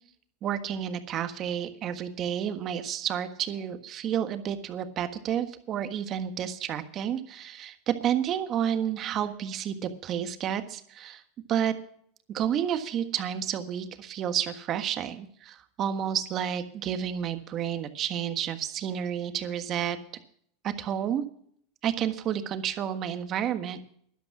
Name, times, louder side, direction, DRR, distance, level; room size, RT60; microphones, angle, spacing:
voice 1, 0.4-11.2 11.5-11.7 12.3-20.0 20.6-21.2 21.8-23.8, right 9 dB, 40° right, 9 dB, 1.4 m, -30 dB
12.0 x 11.0 x 6.0 m, 0.64 s
supercardioid pair, 120°, 0 cm